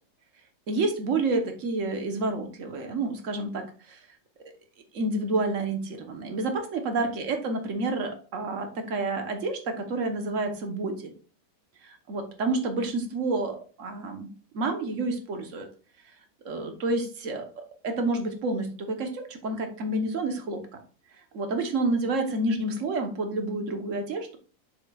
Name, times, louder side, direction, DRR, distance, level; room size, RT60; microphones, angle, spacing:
voice 1, 0.7-4.0 4.9-11.1 11.8-14.3 14.5-15.7 16.4-20.6 21.3-24.4, right 2 dB, 50° right, 5 dB, 1.2 m, -29 dB
7.3 x 6.6 x 2.3 m, 0.40 s
omnidirectional pair, 2.0 m